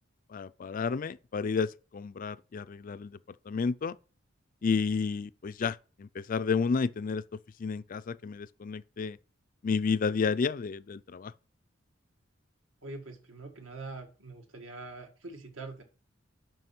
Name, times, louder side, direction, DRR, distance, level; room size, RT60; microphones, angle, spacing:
voice 1, 0.3-3.2 3.5-4.0 4.6-7.2 7.6-9.2 9.6-11.3, left 5 dB, 45° left, 0.4 m, -31 dB
voice 2, 12.8-15.8, right 3 dB, 75° right, 2.0 m, -44 dB
7.8 x 5.8 x 5.9 m
head